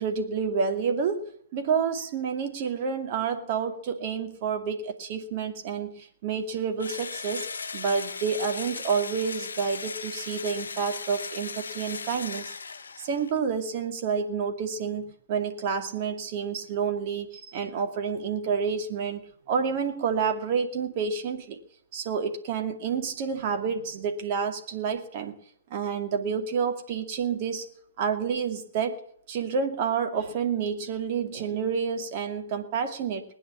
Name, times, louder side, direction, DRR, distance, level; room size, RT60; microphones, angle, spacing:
voice 1, 0.0-7.5 7.7-12.5 13.0-19.2 19.5-21.6 21.9-25.3 25.7-27.7 28.0-29.0 29.3-33.2, right 6 dB, 40° right, 5 dB, 2.4 m, -29 dB
Engine / Drill, 6.8-13.4, left 5 dB, 65° left, 1.0 m, -37 dB
19.5 x 9.8 x 7.3 m, 0.66 s
figure-of-eight pair, 120°, 0 cm